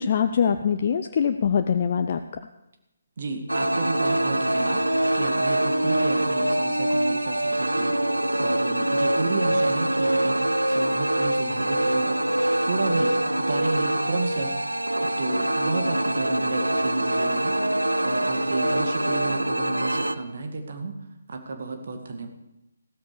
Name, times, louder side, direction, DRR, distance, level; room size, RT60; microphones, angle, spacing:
voice 1, 0.0-2.2, left 7 dB, 40° left, 7 dB, 0.6 m, -23 dB
voice 2, 3.2-4.8 5.1-7.9 8.4-12.2 12.6-13.1 13.4-14.5 14.9-17.5 18.0-20.9 21.3-22.3, right 3 dB, 50° right, 5 dB, 1.9 m, -32 dB
sound 1, 3.5-20.1, right 1 dB, 85° right, 0.8 m, -24 dB
15.5 x 13.5 x 4.8 m, 0.89 s
figure-of-eight pair, 145°, 0 cm